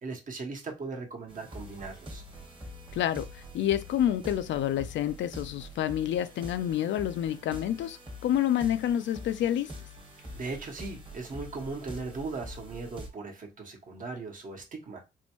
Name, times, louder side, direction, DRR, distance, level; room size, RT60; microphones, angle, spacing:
voice 1, 0.0-2.2 10.3-15.0, right 3 dB, 40° right, 1.1 m, -38 dB
sound 1, 1.3-13.1, equal, 25° right, 1.3 m, -45 dB
voice 2, 2.9-9.7, left 11 dB, 70° left, 0.4 m, -28 dB
4.3 x 2.2 x 3.0 m
cardioid pair, 90°, 20 cm